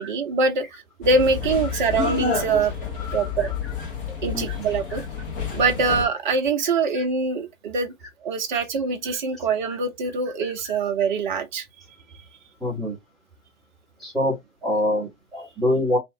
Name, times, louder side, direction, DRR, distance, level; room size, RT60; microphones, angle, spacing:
voice 1, 0.0-2.7 3.1-3.5 4.2-5.0 5.5-7.9 8.2-11.6, right 4 dB, 35° right, 0.6 m, -24 dB
sound 1, 1.0-6.1, left 5 dB, 40° left, 1.1 m, -29 dB
voice 2, 1.7-2.0 2.9-3.5 4.3-5.0 8.5-8.6 10.4-10.8 12.6-13.0 14.0-16.0, left 1 dB, ahead, 0.7 m, -27 dB
2.8 x 2.4 x 2.6 m
figure-of-eight pair, 120°, 42 cm